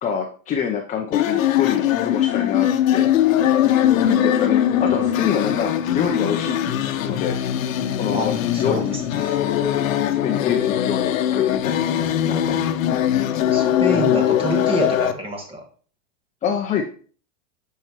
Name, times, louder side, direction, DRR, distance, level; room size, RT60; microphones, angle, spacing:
voice 1, 0.0-3.1 3.9-7.3 8.0-8.3 8.6-9.0 10.0-11.8 12.2-12.6 16.4-16.8, left 7 dB, 20° left, 3 dB, 0.6 m, -26 dB
sound 1, 1.1-15.1, left 11 dB, 80° left, 0.8 m, -21 dB
voice 2, 8.1-9.4 13.5-15.6, right 1 dB, 15° right, 3 dB, 1.5 m, -27 dB
7.6 x 5.7 x 3.0 m, 0.42 s
supercardioid pair, 135°, 39 cm